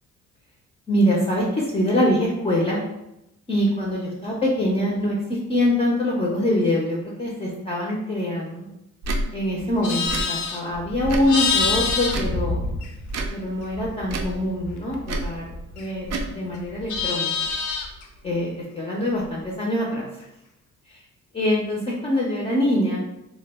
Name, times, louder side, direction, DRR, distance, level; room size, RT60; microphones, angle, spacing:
voice 1, 0.9-2.8 3.5-8.7 9.3-12.6 13.3-15.5 15.8-17.3 18.2-20.2 20.9-21.0 21.3-23.0, left 1 dB, 20° left, -4 dB, 0.5 m, -24 dB
Tick / Tick-tock, 9.0-9.2 10.0-10.3 11.0-11.3 12.1-12.4 13.1-13.3 14.0-14.3 15.0-15.3 16.0-16.3, right 2 dB, 60° right, 0.5 m, -28 dB
Livestock farm animals working animals, 9.6-13.3 13.6-16.1 16.4-18.0, left 4 dB, 70° left, 0.5 m, -27 dB
2.2 x 2.1 x 3.4 m, 0.89 s
cardioid pair, 90°, 30 cm